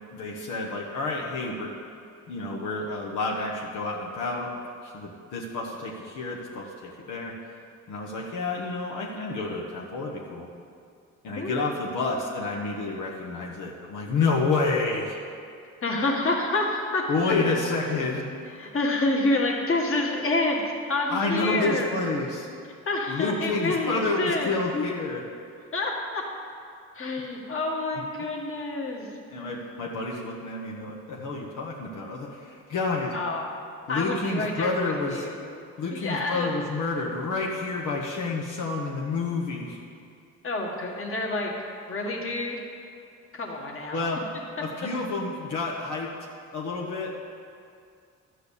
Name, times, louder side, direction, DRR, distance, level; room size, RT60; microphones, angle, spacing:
voice 1, 0.1-1.7 2.3-4.5 4.8-7.3 7.9-10.5 11.2-15.2 17.1-18.3 21.1-22.5 23.1-25.2 29.3-33.1 33.9-35.3 35.8-39.8 43.9-44.2 44.6-46.1 46.5-47.1, left 3 dB, 80° left, -3 dB, 1.3 m, -29 dB
voice 2, 11.4-11.8 15.8-17.3 18.6-20.6 20.9-21.9 22.9-24.5 25.7-26.2 26.9-29.1 33.1-33.6 33.9-35.5 35.9-36.5 40.4-41.5 41.9-42.6 43.3-44.0, left 2 dB, 45° left, -1 dB, 1.9 m, -28 dB
12.0 x 4.9 x 8.3 m, 2.4 s
cardioid pair, 90°, 30 cm